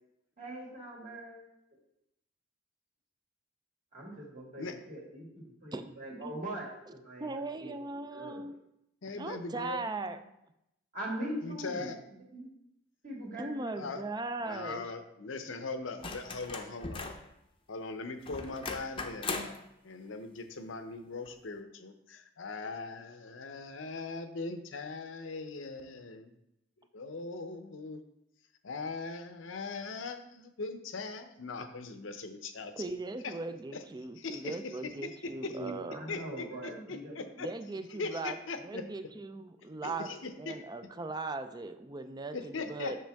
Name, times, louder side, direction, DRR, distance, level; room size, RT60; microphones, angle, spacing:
voice 1, 0.4-1.5 3.9-5.3 5.6-7.8 8.1-8.5 9.7-10.3 10.9-12.5 13.0-13.9 35.5-37.3, right 1 dB, 45° right, -4 dB, 2.4 m, -42 dB
voice 2, 7.2-8.5 9.1-10.2 13.4-14.9 32.8-36.3 37.4-38.4 38.6-40.1 40.4-43.0, right 3 dB, 20° right, 9 dB, 0.4 m, -39 dB
voice 3, 9.0-9.8 11.4-11.9 13.8-14.0 14.4-17.1 17.7-19.6 19.8-26.4 26.9-28.0 28.6-32.7 33.2-33.3 33.7-33.8 34.2-35.5 36.1-36.4 36.9-37.5 38.0-38.8 39.8-40.6 42.3-42.9, left 3 dB, 80° left, 8 dB, 0.7 m, -40 dB
sound 1, 16.0-17.3 18.3-19.6 21.3-21.4, left 3 dB, 25° left, 0.7 m, -39 dB
7.5 x 6.2 x 3.5 m, 0.82 s
head